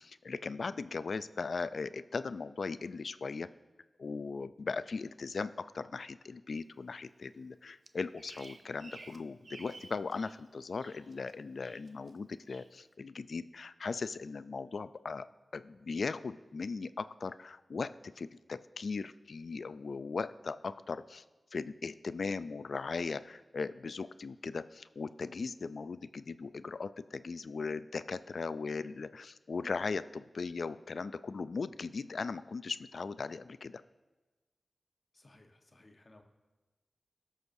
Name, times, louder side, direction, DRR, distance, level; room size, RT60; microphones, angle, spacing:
voice 1, 0.0-3.5 4.0-15.3 15.5-21.2 21.5-33.8, left 4 dB, 70° left, 14 dB, 0.3 m, -38 dB
Bird vocalization bird call bird song, 7.9-10.4 10.7-11.3 11.6-12.1 12.5-12.7, right 3 dB, 55° right, 0.5 m, -53 dB
voice 2, 35.1-36.2, left 2 dB, 40° left, 4 dB, 1.0 m, -60 dB
18.0 x 6.3 x 2.6 m, 1.2 s
cardioid pair, 65°, 0 cm